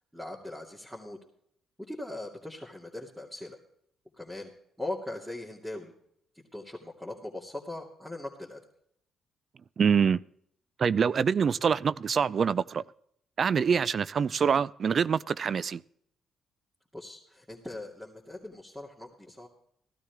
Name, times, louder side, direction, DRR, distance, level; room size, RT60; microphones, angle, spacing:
voice 1, 0.1-1.2 1.9-3.6 4.1-4.5 4.8-5.9 6.5-8.6 16.9-19.5, left 1 dB, 5° right, 2.5 m, -40 dB
voice 2, 9.8-10.2 10.8-12.8 13.4-15.8, right 6 dB, 50° right, 0.4 m, -25 dB
16.0 x 12.5 x 3.5 m
hypercardioid pair, 50°, 0 cm